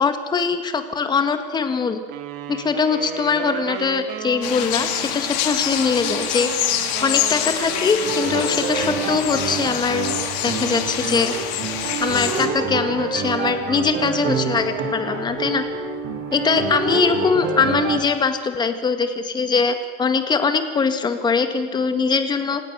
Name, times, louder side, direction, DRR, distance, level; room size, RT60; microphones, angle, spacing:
voice 1, 0.0-2.0 2.5-6.5 7.0-10.1 10.4-11.3 12.0-15.6 16.3-22.7, left 5 dB, 20° left, 8 dB, 1.9 m, -22 dB
sound 1, 2.1-10.0, right 9 dB, 70° right, 2.4 m, -34 dB
sound 2, 4.4-12.5, left 11 dB, 80° left, 2.8 m, -26 dB
sound 3, 8.0-18.0, right 5 dB, 50° right, 4.2 m, -27 dB
27.5 x 17.0 x 7.0 m, 1.5 s
cardioid pair, 150°, 21 cm